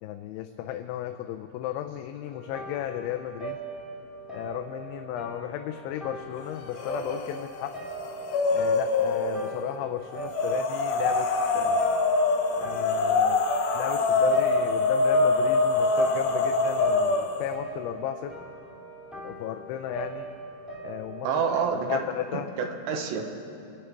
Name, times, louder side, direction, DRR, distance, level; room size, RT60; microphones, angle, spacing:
voice 1, 0.0-3.6 4.3-7.8 8.5-11.3 11.6-11.9 12.6-13.4 13.7-18.3 19.2-20.3 20.8-21.3 21.9-22.5, left 11 dB, 90° left, 6 dB, 3.0 m, -34 dB
sound 1, 2.3-21.6, right 3 dB, ahead, 0.5 m, -41 dB
sound 2, 6.7-7.4 7.7-9.5 10.3-17.5, left 3 dB, 75° left, 2.4 m, -24 dB
voice 2, 21.2-22.0 22.6-23.3, right 6 dB, 75° right, 4 dB, 3.1 m, -27 dB
26.5 x 9.9 x 4.6 m, 2.6 s
omnidirectional pair, 5.3 m